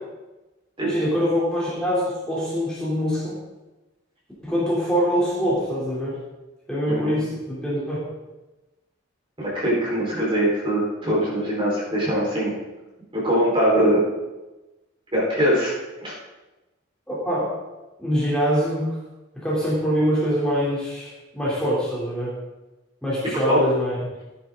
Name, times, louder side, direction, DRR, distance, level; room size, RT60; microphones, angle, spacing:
voice 1, 0.8-3.4 4.4-6.2 6.7-8.1 17.1-17.5 18.0-19.0 19.3-22.3 23.0-24.0, equal, 5° left, -8 dB, 3.3 m, -24 dB
voice 2, 9.4-12.5 13.1-14.0 15.1-15.7 16.0-16.1 23.5-23.6, equal, 25° right, -5 dB, 4.5 m, -22 dB
16.0 x 10.5 x 3.9 m, 1.1 s
head